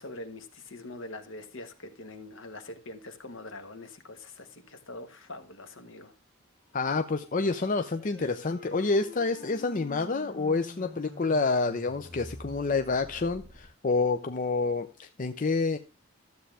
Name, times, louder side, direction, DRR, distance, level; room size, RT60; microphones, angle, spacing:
voice 1, 0.0-6.1, left 2 dB, 65° left, 1.4 m, -43 dB
voice 2, 6.7-15.8, left 3 dB, 40° left, 0.5 m, -28 dB
sound 1, 6.7-13.7, left 1 dB, 15° left, 6.2 m, -48 dB
12.5 x 7.7 x 3.4 m
head